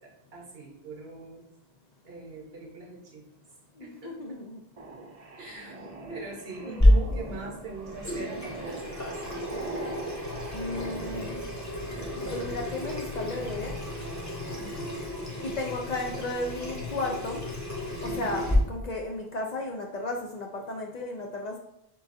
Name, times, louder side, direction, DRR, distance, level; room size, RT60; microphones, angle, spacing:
voice 1, 0.0-1.4 2.0-3.2 3.8-4.1 5.4-9.7 14.6-15.0 18.0-18.4, right 3 dB, 70° right, -1 dB, 1.2 m, -42 dB
voice 2, 3.8-4.6 6.6-7.2 10.5-11.4 12.3-13.8 15.4-17.4 18.0-21.6, left 2 dB, 55° left, 1 dB, 0.5 m, -34 dB
sound 1, 4.8-14.7, right 3 dB, 45° right, 0.5 m, -43 dB
Water tap faucet / Sink (filling or washing), 6.8-18.5, left 1 dB, 20° left, 0.7 m, -30 dB
6.8 x 2.5 x 2.6 m, 0.80 s
omnidirectional pair, 1.1 m